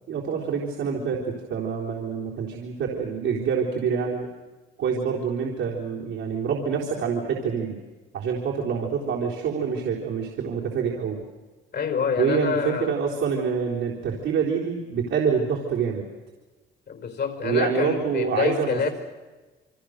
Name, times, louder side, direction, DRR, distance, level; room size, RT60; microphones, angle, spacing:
voice 1, 0.1-4.3 4.8-7.8 8.1-11.2 12.2-16.1 17.4-18.9, right 6 dB, 80° right, -4 dB, 4.0 m, -26 dB
voice 2, 11.7-13.0 16.9-18.9, left 6 dB, 55° left, 7 dB, 4.8 m, -27 dB
28.0 x 25.0 x 6.6 m, 1.3 s
cardioid pair, 90°, 20 cm